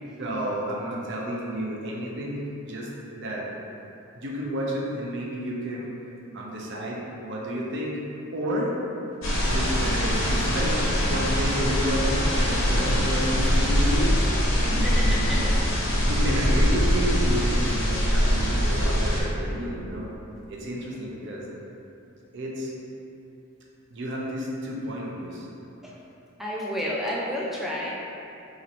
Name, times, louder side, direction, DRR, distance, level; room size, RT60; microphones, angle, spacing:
voice 1, 0.2-2.4 2.7-3.5 4.2-5.9 6.3-8.0 8.3-8.7 9.5-14.1 14.5-15.7 16.0-20.1 20.5-21.5 22.3-22.7 23.9-25.5, equal, 55° right, -3 dB, 0.5 m, -31 dB
sound 1, 9.2-19.2, equal, 60° left, 0.7 m, -23 dB
voice 2, 14.7-15.4 20.8-21.0 25.8-26.0 26.4-27.9, equal, ahead, -5 dB, 0.4 m, -31 dB
3.0 x 2.5 x 4.1 m, 2.8 s
head